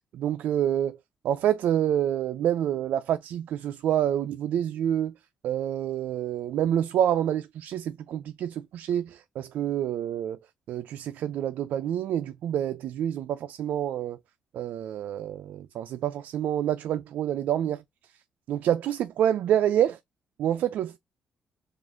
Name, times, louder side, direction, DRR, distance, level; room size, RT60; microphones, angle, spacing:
voice 1, 0.1-1.0 1.2-5.1 5.4-10.4 10.7-14.2 14.5-17.8 18.5-20.0 20.4-21.0, right 10 dB, 80° right, 0.4 m, -27 dB
4.9 x 2.5 x 3.5 m
cardioid pair, 105°, 3 cm